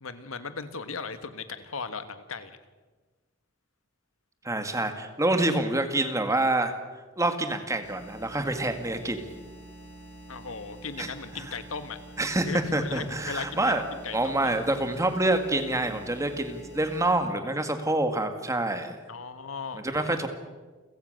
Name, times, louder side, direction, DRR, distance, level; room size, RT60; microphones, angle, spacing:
voice 1, 0.0-2.5 10.3-12.0 12.5-14.5 19.1-20.3, left 4 dB, 85° left, 10 dB, 1.6 m, -37 dB
voice 2, 4.4-9.3 11.0-11.1 11.4-11.5 12.2-13.8 14.1-19.0 19.7-20.3, right 2 dB, 15° right, 7 dB, 1.9 m, -27 dB
sound 1, 7.8-17.1, right 1 dB, 55° left, 7.1 m, -47 dB
29.5 x 16.0 x 6.6 m, 1.3 s
head